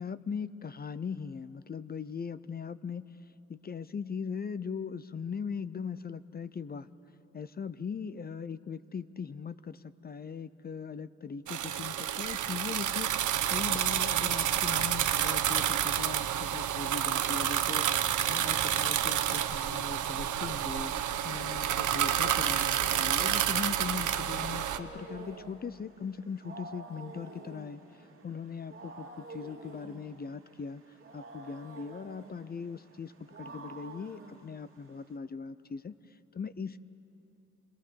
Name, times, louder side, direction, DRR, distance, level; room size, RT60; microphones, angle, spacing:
voice 1, 0.0-3.0 3.5-6.9 7.3-13.1 13.5-17.9 18.3-20.9 21.2-27.8 28.2-30.8 31.1-36.0 36.3-36.8, left 6 dB, 30° left, 15 dB, 0.6 m, -39 dB
sound 1, 11.5-24.8, right 10 dB, 75° right, 0.9 m, -29 dB
Wild animals, 24.3-35.2, right 3 dB, 45° right, 2.5 m, -49 dB
27.0 x 19.5 x 6.9 m, 3.0 s
cardioid pair, 95°, 30 cm